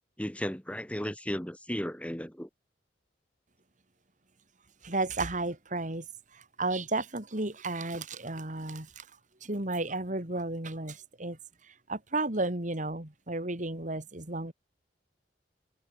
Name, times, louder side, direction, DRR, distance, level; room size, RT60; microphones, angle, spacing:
voice 1, 0.2-2.5, equal, 10° left, 5.2 m, -35 dB
voice 2, 4.8-6.1 6.3-9.1 9.4-14.5, right 2 dB, 45° right, 3.8 m, -33 dB
head